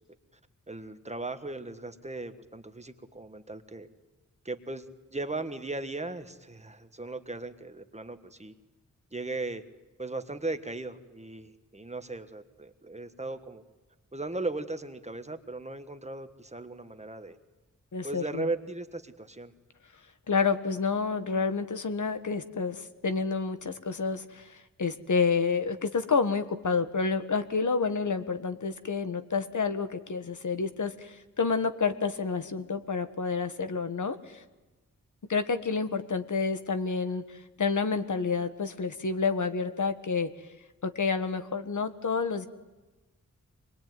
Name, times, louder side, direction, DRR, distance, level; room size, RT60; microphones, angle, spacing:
voice 1, 0.7-3.9 4.4-8.5 9.1-9.6 10.0-13.6 14.1-17.4 18.0-19.5, right 2 dB, 20° right, 8 dB, 1.5 m, -37 dB
voice 2, 17.9-18.4 20.3-34.4 35.3-40.3 40.8-42.5, left 5 dB, 65° left, 9 dB, 1.6 m, -29 dB
25.5 x 21.5 x 9.4 m, 1.1 s
wide cardioid pair, 125°, 32 cm